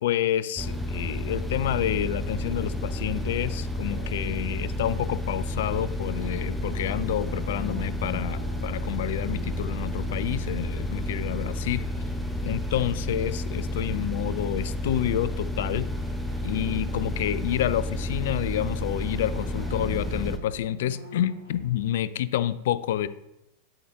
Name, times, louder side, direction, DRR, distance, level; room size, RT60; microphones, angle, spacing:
voice 1, 0.0-11.9 12.4-15.9 16.4-23.1, left 11 dB, 55° left, 15 dB, 0.3 m, -29 dB
sound 1, 0.6-20.4, left 1 dB, ahead, 0.7 m, -31 dB
sound 2, 3.6-14.7 15.0-22.0, equal, 70° right, 1.7 m, -47 dB
7.2 x 5.5 x 2.9 m, 0.87 s
figure-of-eight pair, 90°, 0 cm